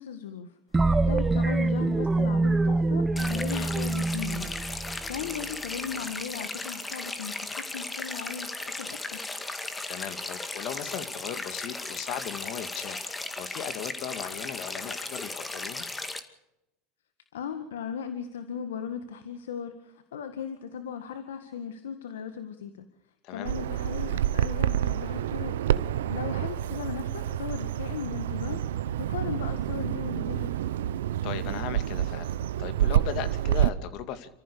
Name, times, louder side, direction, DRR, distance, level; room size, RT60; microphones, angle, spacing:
voice 1, 0.0-9.2 17.3-22.9 23.3-25.6 25.8-30.5, left 7 dB, 85° left, 9 dB, 1.7 m, -37 dB
sound 1, 0.7-5.4, right 2 dB, 15° right, 1.3 m, -25 dB
sound 2, 3.2-16.2, left 2 dB, 15° left, 2.2 m, -36 dB
voice 2, 9.9-15.9 23.2-23.5 31.2-34.3, left 9 dB, 55° left, 10 dB, 2.3 m, -37 dB
Bird vocalization bird call bird song, 23.5-33.7, right 11 dB, 85° right, 0.8 m, -28 dB
27.5 x 14.5 x 6.9 m, 0.88 s
hypercardioid pair, 100°, 0 cm